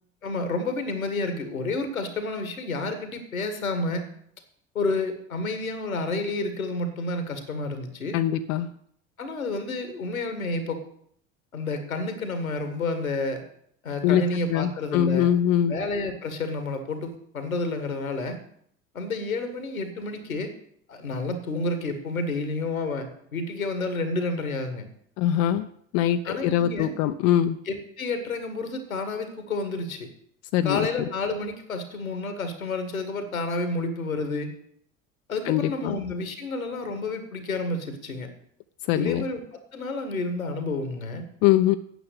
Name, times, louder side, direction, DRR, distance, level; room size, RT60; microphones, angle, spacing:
voice 1, 0.2-4.0 4.8-8.2 9.2-10.8 11.5-13.4 13.8-15.3 15.7-18.4 18.9-20.5 20.9-24.9 26.2-26.9 27.7-30.1 30.6-34.5 35.3-38.3 38.9-39.4 39.7-41.3, left 2 dB, 85° left, 8 dB, 1.7 m, -30 dB
voice 2, 8.1-8.7 14.0-14.2 14.5-15.7 25.2-25.7 25.9-27.6 30.5-30.9 35.5-36.0 38.9-39.2 41.4-41.8, left 11 dB, 50° left, 9 dB, 0.7 m, -22 dB
9.0 x 7.7 x 8.2 m, 0.68 s
figure-of-eight pair, 65°, 41 cm